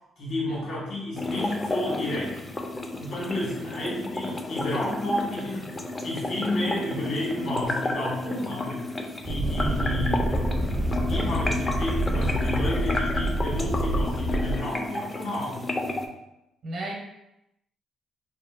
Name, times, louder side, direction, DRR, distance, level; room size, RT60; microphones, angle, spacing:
voice 1, 0.2-2.4 3.0-5.7 6.0-8.9 9.2-15.7, left 1 dB, 75° left, -6 dB, 1.5 m, -31 dB
sound 1, 1.2-16.1, left 2 dB, 25° left, 0.3 m, -32 dB
sound 2, 9.3-14.6, equal, 35° right, 0.5 m, -27 dB
voice 2, 16.6-16.9, right 2 dB, 65° right, -1 dB, 0.8 m, -35 dB
2.8 x 2.1 x 2.4 m, 0.86 s
cardioid pair, 90°, 0 cm